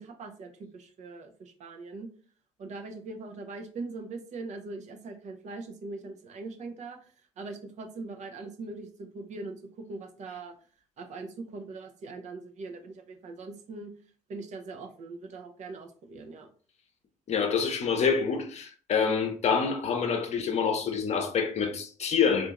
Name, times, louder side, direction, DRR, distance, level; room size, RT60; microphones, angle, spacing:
voice 1, 0.0-2.1 2.6-10.5 11.0-13.9 14.3-16.5, right 3 dB, 50° right, 0.7 m, -41 dB
voice 2, 17.3-22.5, left 6 dB, 45° left, 0.8 m, -27 dB
2.7 x 2.5 x 3.6 m
hypercardioid pair, 50°, 16 cm